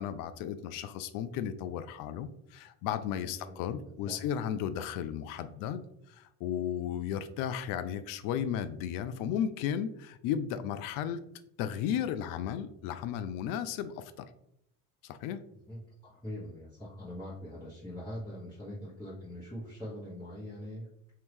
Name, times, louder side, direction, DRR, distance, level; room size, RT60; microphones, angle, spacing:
voice 1, 0.0-5.8 6.1-11.2 11.6-14.3 15.0-15.4, left 9 dB, 50° left, 12 dB, 0.4 m, -34 dB
voice 2, 3.2-4.2 15.6-21.1, left 1 dB, 10° left, -11 dB, 1.3 m, -43 dB
2.8 x 2.7 x 3.4 m, 0.75 s
hypercardioid pair, 80°, 43 cm